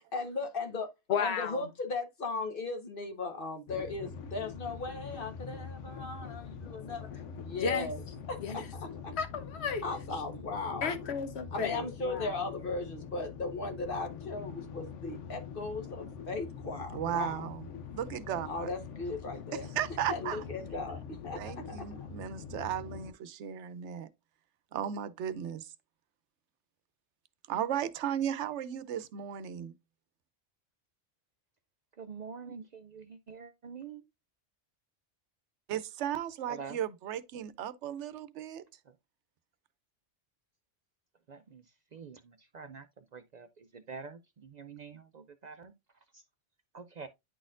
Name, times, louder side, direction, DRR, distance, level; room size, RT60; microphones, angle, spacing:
voice 1, 0.1-0.9 1.2-8.0 8.3-9.1 9.8-10.9 11.5-17.5 18.4-19.7 20.1-22.0, left 3 dB, 50° left, 1.4 m, -37 dB
voice 2, 1.1-1.6 7.6-7.9 8.4-8.6 9.2-9.8 10.8-12.3, left 6 dB, 65° left, 1.2 m, -33 dB
sound 1, 3.7-23.1, left 6 dB, 85° left, 1.1 m, -44 dB
voice 3, 16.9-17.7 17.9-18.7 19.5-20.4 21.4-24.1 24.7-25.7 27.5-29.7 35.7-38.6, right 10 dB, 75° right, 0.9 m, -35 dB
voice 4, 32.0-34.0 36.5-36.8 38.8-39.0 41.3-45.7 46.1-46.2 46.7-47.1, right 5 dB, 55° right, 0.5 m, -46 dB
10.0 x 4.1 x 2.4 m
omnidirectional pair, 1.2 m